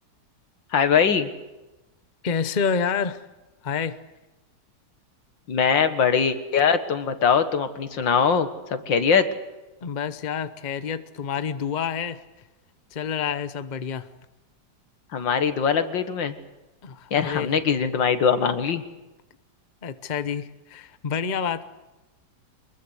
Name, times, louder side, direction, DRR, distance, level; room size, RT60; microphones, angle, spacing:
voice 1, 0.7-1.3 5.5-9.3 15.1-16.3 17.1-18.8, left 6 dB, 85° left, 10 dB, 2.3 m, -22 dB
voice 2, 2.2-3.2 3.6-4.0 9.8-12.2 12.9-14.1 16.8-17.5 19.8-21.6, left 6 dB, 30° left, 12 dB, 0.9 m, -28 dB
24.0 x 22.0 x 8.2 m, 1.1 s
omnidirectional pair, 2.0 m